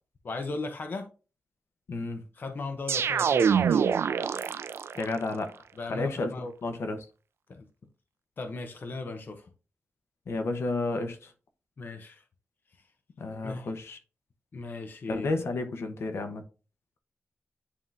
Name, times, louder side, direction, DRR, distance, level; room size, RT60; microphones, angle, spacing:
voice 1, 0.2-1.1 2.3-3.8 5.8-6.5 7.5-7.7 8.4-9.5 11.8-12.2 12.8-12.9 13.4-13.7 14.5-15.3, left 3 dB, 50° left, 0.8 m, -37 dB
voice 2, 1.9-2.2 4.9-5.6 5.9-7.1 10.3-11.3 13.2-14.0 15.1-16.4, left 2 dB, 75° left, 1.0 m, -32 dB
sound 1, 2.9-5.1, right 7 dB, 75° right, 0.4 m, -25 dB
9.8 x 3.6 x 2.6 m
wide cardioid pair, 130°, 4 cm